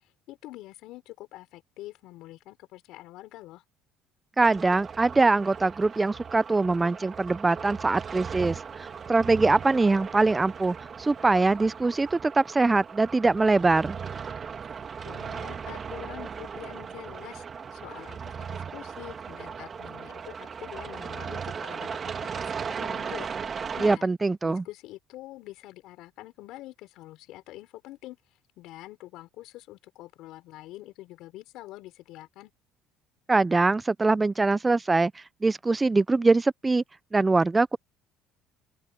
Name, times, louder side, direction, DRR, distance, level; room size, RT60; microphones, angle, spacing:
voice 1, 0.0-3.6 15.0-17.4 17.7-24.1 24.4-28.2 28.6-32.5, left 16 dB, 70° left, 4.0 m, -45 dB
voice 2, 4.4-14.0 23.8-24.6 33.3-35.1 35.4-36.8 37.1-37.8, right 3 dB, 15° right, 0.4 m, -23 dB
sound 1, 4.4-24.0, right 6 dB, 35° right, 2.3 m, -37 dB
open air
supercardioid pair, 90°, 0 cm